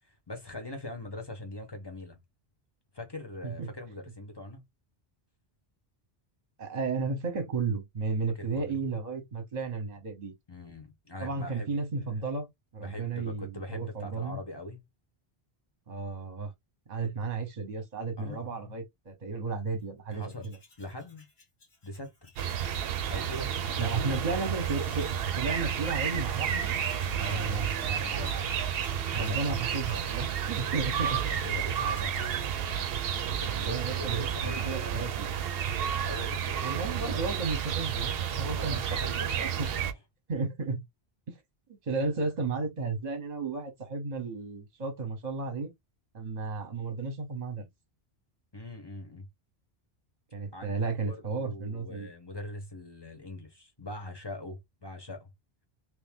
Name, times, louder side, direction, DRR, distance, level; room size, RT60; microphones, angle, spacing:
voice 1, 0.1-2.2 2.9-4.6 8.3-8.8 10.5-12.2 12.8-14.8 18.2-18.7 20.1-20.5 20.8-21.2 21.8-22.3 23.1-24.4 27.2-28.7 29.1-29.6 31.0-32.3 33.4-35.1 35.9-37.5 38.5-39.9 48.5-49.3 50.5-55.3, left 1 dB, 25° left, 0.9 m, -42 dB
voice 2, 6.6-10.3 11.2-14.4 15.9-16.5 16.9-20.6 23.8-25.1 25.4-26.8 27.0-27.7 29.1-31.2 33.4-35.3 36.6-39.7 40.3-40.8 41.3-41.4 41.7-45.7 46.1-47.6 50.3-52.1, right 4 dB, 45° right, 1.0 m, -33 dB
Tools, 20.1-25.2 25.6-25.7 25.9-33.5, left 3 dB, 75° left, 1.7 m, -55 dB
sound 1, 22.4-39.9, right 8 dB, 70° right, 0.8 m, -31 dB
3.1 x 2.6 x 3.5 m
omnidirectional pair, 1.1 m